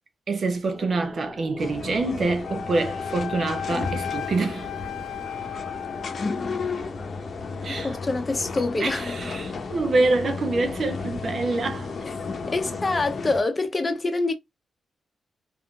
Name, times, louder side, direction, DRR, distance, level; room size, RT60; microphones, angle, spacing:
voice 1, 0.3-4.7 7.6-8.0 8.8-11.9, right 3 dB, 55° right, 0.5 m, -26 dB
sound 1, 0.6-12.6, left 2 dB, 10° left, 1.6 m, -44 dB
sound 2, 1.6-13.4, left 4 dB, 50° left, 0.8 m, -33 dB
Wind instrument woodwind instrument, 2.4-6.7, left 9 dB, 85° left, 0.7 m, -35 dB
voice 2, 7.7-9.2 12.5-14.3, left 3 dB, 30° left, 0.9 m, -26 dB
3.5 x 2.5 x 2.3 m
cardioid pair, 90°, 0 cm